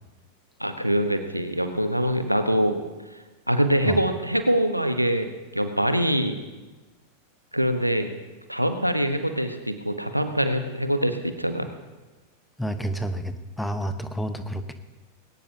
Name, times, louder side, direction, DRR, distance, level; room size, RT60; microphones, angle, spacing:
voice 1, 0.6-2.8 3.5-5.3 5.5-6.4 7.5-8.1 8.5-11.7, equal, 90° right, 8 dB, 1.1 m, -24 dB
voice 2, 12.6-14.7, right 1 dB, 5° left, 8 dB, 1.1 m, -30 dB
20.5 x 17.5 x 2.8 m, 1.2 s
figure-of-eight pair, 90°, 0 cm